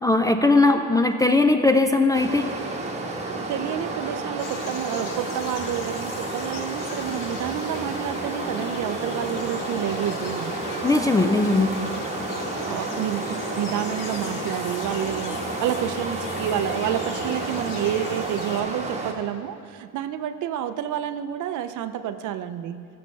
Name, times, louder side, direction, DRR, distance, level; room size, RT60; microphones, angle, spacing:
voice 1, 0.0-2.5 10.8-11.7, left 2 dB, 10° left, 6 dB, 0.3 m, -19 dB
Stream, 2.1-19.1, right 2 dB, 20° right, 1.1 m, -31 dB
voice 2, 3.3-10.5 11.8-12.0 12.7-22.9, right 10 dB, 60° right, 11 dB, 0.5 m, -29 dB
sound 1, 4.4-18.6, left 6 dB, 65° left, 1.0 m, -39 dB
sound 2, 8.5-15.9, left 1 dB, 25° left, 1.2 m, -43 dB
14.5 x 6.8 x 3.2 m, 2.3 s
cardioid pair, 95°, 35 cm